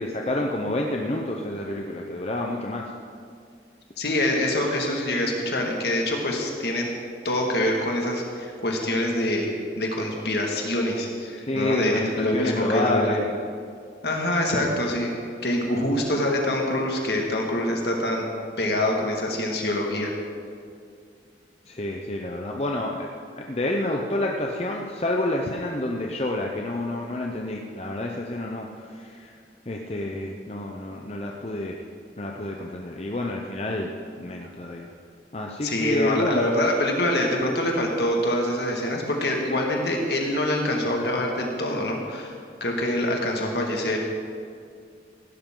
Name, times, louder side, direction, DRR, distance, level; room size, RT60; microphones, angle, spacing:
voice 1, 0.0-2.8 11.4-13.2 21.7-23.1 23.4-29.3 29.7-31.8 32.2-34.9 35.3-36.6, left 1 dB, 35° left, 0 dB, 0.7 m, -28 dB
voice 2, 4.0-6.9 7.2-9.5 9.8-13.2 14.0-15.1 15.4-18.3 18.6-20.1 35.6-42.3 42.6-44.0, left 1 dB, 65° left, 0 dB, 2.0 m, -25 dB
16.0 x 12.0 x 3.8 m, 2.3 s
head